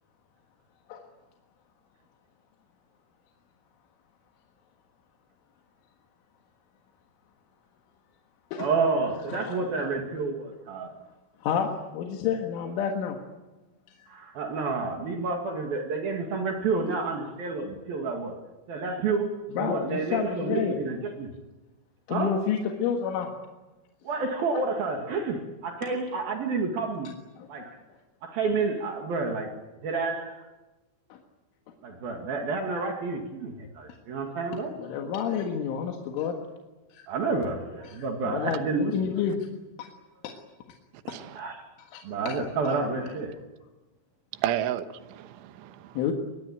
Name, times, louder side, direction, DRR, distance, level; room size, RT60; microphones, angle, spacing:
voice 1, 8.6-10.9 14.1-18.4 18.7-21.3 22.1-22.4 24.0-27.1 27.5-27.8 28.2-29.5 29.8-30.4 31.8-34.7 37.1-39.0 41.3-41.6 42.0-43.4, right 4 dB, 60° right, 3.5 m, -29 dB
voice 2, 9.3-9.6 11.4-13.2 19.5-20.8 22.1-23.3 27.4-27.7 31.1-31.2 34.7-36.4 36.9-37.0 37.8-38.1 38.3-39.4 39.8-39.9 40.2-40.3 41.1-41.2 41.9-42.3 42.7-42.8 46.0-46.1, left 7 dB, 85° left, 4.2 m, -29 dB
voice 3, 41.1-41.4 44.3-46.0, right 11 dB, 85° right, 3.6 m, -32 dB
24.0 x 21.5 x 8.9 m
omnidirectional pair, 5.4 m